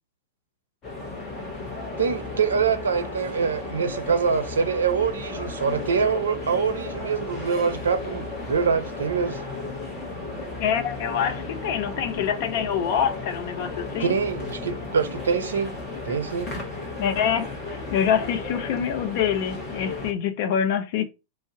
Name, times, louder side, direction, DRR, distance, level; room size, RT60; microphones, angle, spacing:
sound 1, 0.8-20.1, left 3 dB, 30° left, 0.9 m, -34 dB
voice 1, 2.0-9.4 14.0-15.7 16.0-16.5, right 6 dB, 70° right, 0.5 m, -25 dB
voice 2, 10.6-14.1 17.0-21.0, left 8 dB, 50° left, 0.5 m, -25 dB
2.4 x 2.0 x 3.7 m
figure-of-eight pair, 90°, 0 cm